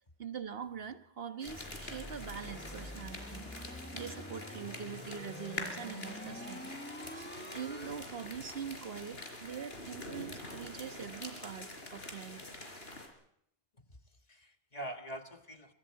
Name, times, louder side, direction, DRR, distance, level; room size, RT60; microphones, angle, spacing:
voice 1, 0.2-6.7 7.1-12.4, right 7 dB, 70° right, 8 dB, 1.4 m, -43 dB
sound 1, 1.4-13.1, left 2 dB, 80° left, 4.5 m, -46 dB
sound 2, 1.5-7.9, left 1 dB, 10° left, 0.8 m, -47 dB
voice 2, 13.7-15.7, right 1 dB, 40° left, 5 dB, 1.8 m, -45 dB
25.5 x 24.0 x 4.7 m, 0.71 s
omnidirectional pair, 1.0 m